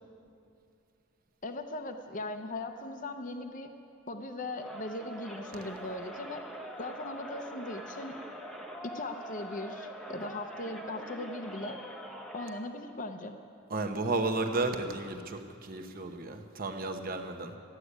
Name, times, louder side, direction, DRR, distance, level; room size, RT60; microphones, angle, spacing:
voice 1, 1.4-3.7 4.1-6.4 6.8-8.2 8.8-11.8 12.3-13.4, left 2 dB, 35° left, 0.7 m, -39 dB
Crowd, 4.6-12.7, equal, ahead, 0.9 m, -44 dB
voice 2, 13.7-17.6, right 2 dB, 40° right, 0.9 m, -33 dB
14.0 x 8.2 x 9.8 m
head